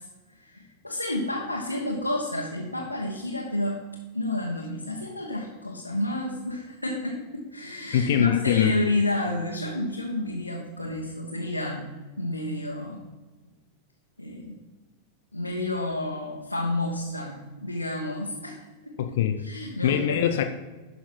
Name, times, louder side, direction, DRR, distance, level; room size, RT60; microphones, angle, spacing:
voice 1, 0.0-3.8 4.1-11.9 12.2-13.1 14.2-14.5 15.3-19.0 19.4-20.4, left 1 dB, 85° left, -2 dB, 1.2 m, -30 dB
voice 2, 7.9-8.7 19.0-19.4 19.8-20.4, left 9 dB, 55° left, 8 dB, 0.6 m, -22 dB
11.5 x 5.7 x 4.6 m, 1.2 s
figure-of-eight pair, 90°, 0 cm